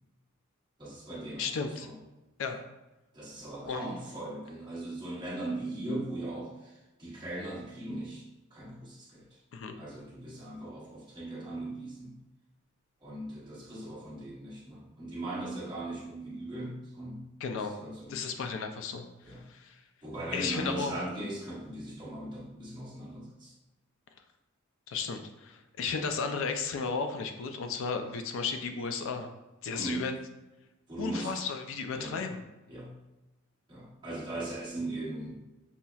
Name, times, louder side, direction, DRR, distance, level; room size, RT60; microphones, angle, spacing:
voice 1, 0.8-1.9 2.5-2.6 3.1-8.2 8.5-9.3 9.7-12.2 13.0-17.2 17.5-18.1 19.2-19.4 20.0-23.5 29.7-30.1 30.9-31.3 32.0-32.2 32.7-32.9 33.7-35.4, right 1 dB, 20° right, -7 dB, 0.9 m, -39 dB
voice 2, 1.4-1.9 2.4-2.6 3.6-3.9 9.5-9.7 17.4-17.7 18.1-19.0 19.5-19.8 20.3-20.9 24.9-29.3 29.6-30.1 31.0-32.4, left 5 dB, 65° left, 6 dB, 0.4 m, -34 dB
5.5 x 2.0 x 2.3 m, 1.0 s
head